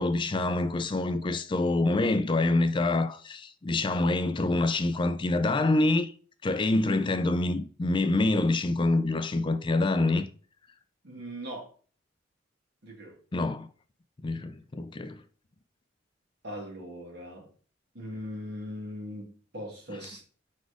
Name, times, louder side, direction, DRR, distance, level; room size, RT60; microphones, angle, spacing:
voice 1, 0.0-6.1 6.4-10.3 13.3-13.7 14.2-15.2, left 2 dB, 25° left, 0.4 m, -26 dB
voice 2, 11.0-11.7 12.8-13.2 16.4-17.5 17.9-20.2, equal, 60° right, 2.4 m, -40 dB
4.7 x 4.2 x 4.9 m
head